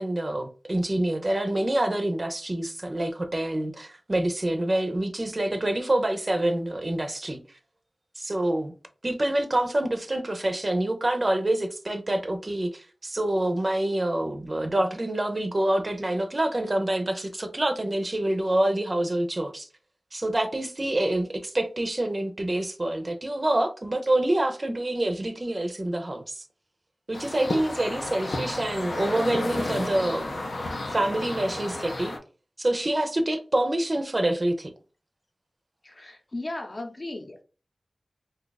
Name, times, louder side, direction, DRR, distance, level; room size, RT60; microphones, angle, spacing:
voice 1, 0.0-7.6 8.2-8.7 9.0-19.7 20.1-26.4 27.1-32.2 32.6-34.7, right 1 dB, 35° right, 0.5 m, -26 dB
sound 1, 27.1-32.2, left 2 dB, 85° left, 0.6 m, -32 dB
voice 2, 35.8-37.4, left 2 dB, 50° left, 0.7 m, -36 dB
2.6 x 2.4 x 3.9 m
wide cardioid pair, 85°, 0 cm